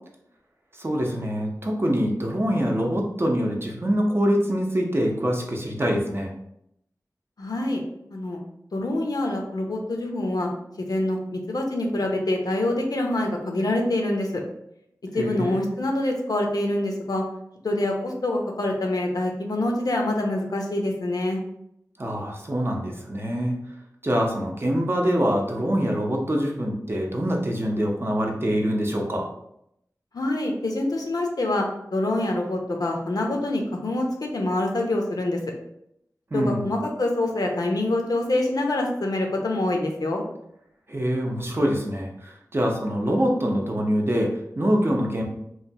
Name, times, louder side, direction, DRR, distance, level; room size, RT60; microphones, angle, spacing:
voice 1, 0.7-6.3 15.1-15.6 22.0-23.6 24.0-29.3 36.3-36.7 40.9-45.3, equal, 35° right, 0 dB, 0.6 m, -24 dB
voice 2, 7.4-7.8 8.1-8.4 8.7-10.5 10.8-14.4 15.1-17.2 17.6-21.4 30.1-35.4 36.3-40.2, left 1 dB, 75° left, 1 dB, 0.6 m, -25 dB
3.0 x 2.2 x 2.7 m, 0.77 s
wide cardioid pair, 45°, 7 cm